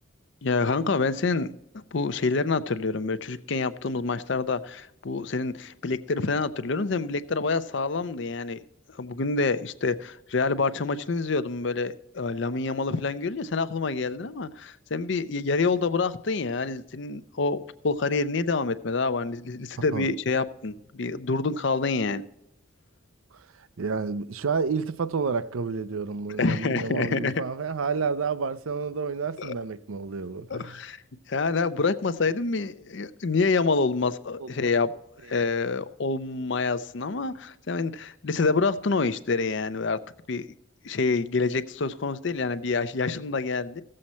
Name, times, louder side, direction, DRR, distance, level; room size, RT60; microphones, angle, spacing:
voice 1, 0.4-1.5 1.7-8.6 9.0-22.2 26.4-27.3 29.4-29.5 30.5-31.0 31.3-34.9 35.3-40.0 40.3-40.4 40.8-43.8, left 4 dB, 60° left, 0.6 m, -27 dB
voice 2, 23.8-30.8 34.4-34.7, right 5 dB, 80° right, 0.5 m, -30 dB
15.5 x 7.7 x 4.2 m
head